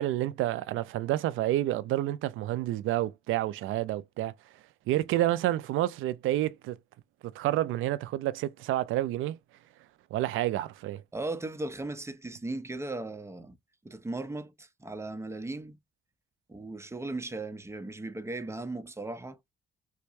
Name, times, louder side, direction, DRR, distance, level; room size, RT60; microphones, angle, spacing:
voice 1, 0.0-4.3 4.9-6.8 7.2-9.4 10.1-11.0, right 14 dB, 85° right, 0.5 m, -29 dB
voice 2, 11.1-13.6 13.8-15.8 16.5-19.4, right 2 dB, 15° right, 0.7 m, -37 dB
4.6 x 2.2 x 2.6 m
cardioid pair, 90°, 20 cm